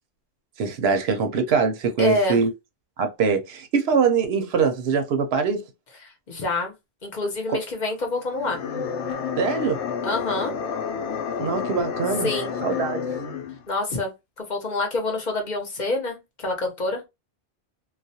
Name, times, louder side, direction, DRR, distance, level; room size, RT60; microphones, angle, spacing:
voice 1, 0.6-2.5 3.0-5.6 7.5-7.6 9.4-9.8 11.4-12.3 12.6-13.1, right 5 dB, 70° right, 0.8 m, -23 dB
voice 2, 2.0-2.4 6.0-6.7 7.0-8.6 10.0-10.5 12.2-12.5 13.7-17.0, left 2 dB, 45° left, 0.8 m, -27 dB
sound 1, 8.3-13.6, left 6 dB, 85° left, 0.9 m, -30 dB
2.3 x 2.1 x 2.6 m
omnidirectional pair, 1.1 m